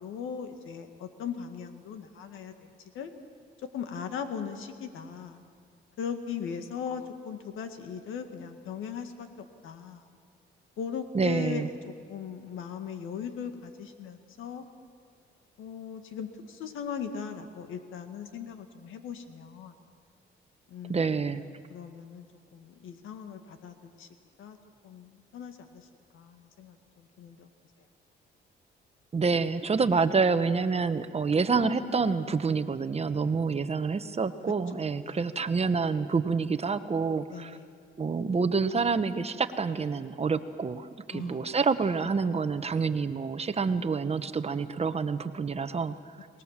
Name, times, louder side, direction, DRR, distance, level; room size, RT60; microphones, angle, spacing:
voice 1, 0.0-3.1 3.7-5.4 6.0-10.0 10.8-11.7 12.1-14.6 15.6-19.7 20.7-22.3 22.5-24.1 24.4-24.6 24.8-25.9 26.1-27.5 34.7-35.3 37.3-37.7 41.1-41.6, left 7 dB, 85° left, 7 dB, 1.9 m, -39 dB
voice 2, 11.1-11.7 20.9-21.4 29.1-37.6 38.0-46.0, right 4 dB, 30° right, 11 dB, 1.1 m, -27 dB
23.5 x 20.0 x 7.5 m, 2.1 s
cardioid pair, 90°, 20 cm